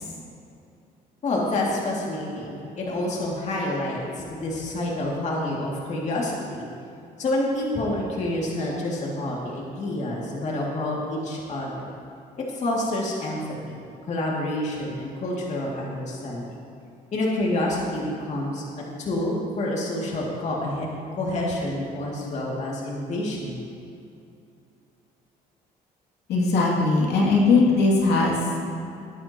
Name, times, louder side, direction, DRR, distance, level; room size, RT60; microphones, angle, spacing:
voice 1, 1.2-6.7 7.2-11.9 12.4-13.4 13.7-13.8 14.1-16.5 17.1-18.6 19.0-23.6, left 1 dB, 45° left, -3 dB, 2.4 m, -28 dB
voice 2, 26.3-28.4, left 3 dB, 75° left, -3 dB, 2.6 m, -19 dB
20.0 x 9.8 x 3.0 m, 2.6 s
cardioid pair, 110°, 17 cm